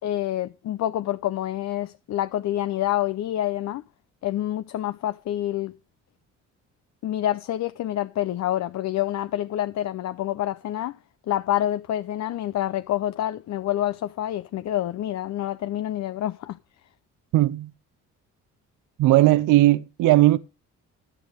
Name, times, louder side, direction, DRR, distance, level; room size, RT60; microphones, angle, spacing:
voice 1, 0.0-3.8 4.2-5.7 7.0-11.0 11.3-16.6, left 13 dB, 65° left, 0.7 m, -27 dB
voice 2, 17.3-17.7 19.0-20.4, right 16 dB, 90° right, 0.7 m, -17 dB
12.0 x 8.3 x 4.9 m
cardioid pair, 90°, 30 cm